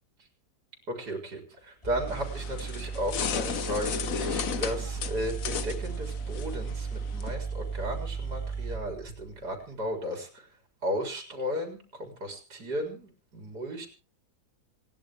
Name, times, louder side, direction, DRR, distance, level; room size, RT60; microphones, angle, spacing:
voice 1, 0.9-10.3 10.8-13.9, equal, 80° right, 3 dB, 4.5 m, -35 dB
sound 1, 1.5-1.6 1.8-9.7, right 5 dB, 20° left, 5.3 m, -36 dB
sound 2, 2.1-7.3, left 7 dB, 60° left, 1.3 m, -35 dB
27.0 x 11.0 x 3.5 m, 0.35 s
omnidirectional pair, 1.7 m